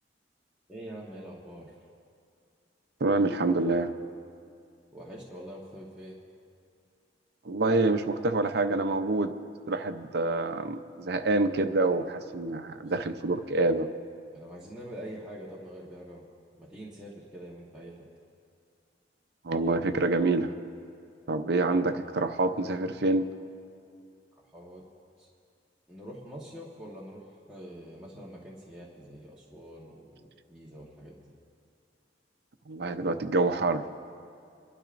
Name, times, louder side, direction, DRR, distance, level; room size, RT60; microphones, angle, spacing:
voice 1, 0.7-1.7 4.9-6.2 13.4-13.5 14.3-16.3 16.6-18.1 24.4-24.8 25.2-25.3 25.9-31.3, equal, 5° right, -7 dB, 1.2 m, -45 dB
voice 2, 3.0-3.9 7.4-9.3 9.7-13.9 19.4-20.5 21.3-23.3 32.7-33.8, right 2 dB, 65° right, 8 dB, 0.6 m, -26 dB
29.0 x 12.0 x 2.6 m, 2.4 s
head